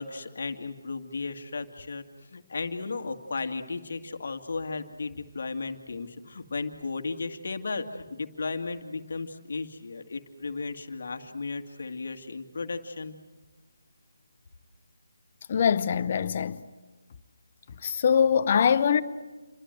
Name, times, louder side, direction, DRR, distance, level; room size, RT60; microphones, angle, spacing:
voice 1, 0.0-13.1, left 4 dB, 50° left, 2.1 m, -35 dB
voice 2, 15.5-16.6 17.8-19.0, left 7 dB, 35° left, 1.0 m, -23 dB
28.5 x 23.5 x 7.8 m
figure-of-eight pair, 155°, 0 cm